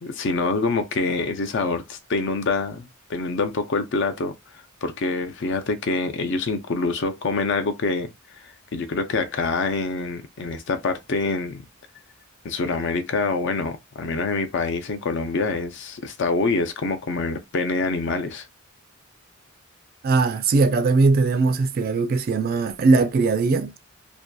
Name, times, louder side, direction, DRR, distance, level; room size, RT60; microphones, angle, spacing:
voice 1, 0.0-4.3 4.8-8.1 8.4-11.6 12.4-18.5, left 3 dB, 60° left, 0.5 m, -26 dB
voice 2, 20.0-23.8, right 3 dB, 45° right, 0.3 m, -20 dB
2.6 x 2.2 x 2.2 m
head